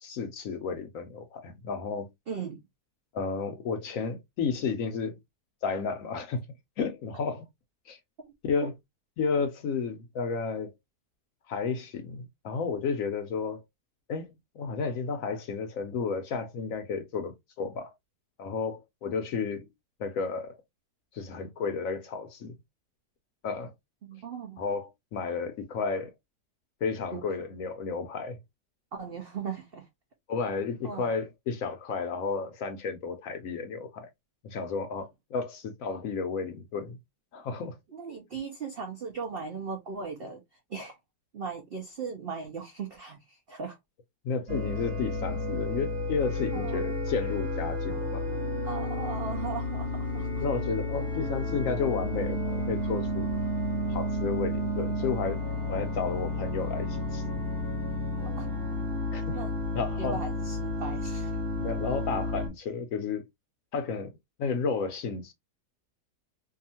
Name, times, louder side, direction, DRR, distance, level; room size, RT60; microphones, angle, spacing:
voice 1, 0.0-2.1 3.1-5.2 5.6-6.5 6.8-7.5 7.9-8.0 8.4-8.7 9.2-10.7 11.5-13.6 14.1-17.9 18.4-19.7 20.0-20.6 21.1-22.5 23.4-23.7 24.6-26.1 26.8-28.4 30.3-34.1 34.4-37.0 37.3-37.8 44.2-48.2 50.4-53.3 53.9-55.4 55.7-57.4 59.1-59.4 59.7-60.2 61.6-63.2 63.7-64.1 64.4-65.3, left 5 dB, 65° left, 0.8 m, -32 dB
voice 2, 2.3-2.6 24.0-24.6 27.1-27.2 28.9-29.9 30.8-31.1 37.9-40.4 40.7-41.0 41.3-43.8 46.5-46.9 48.6-50.4 58.4-58.5 59.3-59.5 60.0-61.4, right 5 dB, 70° right, 0.5 m, -38 dB
sound 1, 44.5-62.5, left 1 dB, 40° right, 1.2 m, -31 dB
2.7 x 2.4 x 2.7 m
omnidirectional pair, 1.7 m